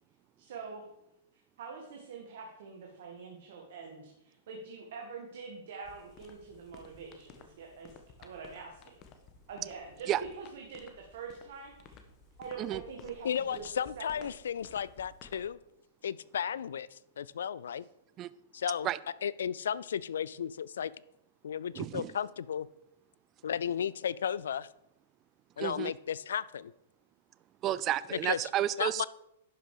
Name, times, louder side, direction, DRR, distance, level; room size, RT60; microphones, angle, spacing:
voice 1, 0.4-0.8 1.6-8.9 9.5-10.1 10.4-12.0 12.4-13.6 14.0-14.3, right 5 dB, 65° right, 0 dB, 1.6 m, -45 dB
sound 1, 5.8-15.5, left 5 dB, 35° left, 1.2 m, -56 dB
voice 2, 13.2-15.6 16.0-17.8 18.5-18.9 19.2-20.9 21.4-22.7 23.4-24.7 25.6-26.7 28.1-28.4 28.8-29.1, left 8 dB, 80° left, 19 dB, 0.3 m, -34 dB
voice 3, 21.8-22.1 25.6-25.9 27.6-29.1, right 12 dB, 30° right, 17 dB, 0.3 m, -31 dB
11.0 x 5.4 x 4.8 m, 0.84 s
hypercardioid pair, 125°, 0 cm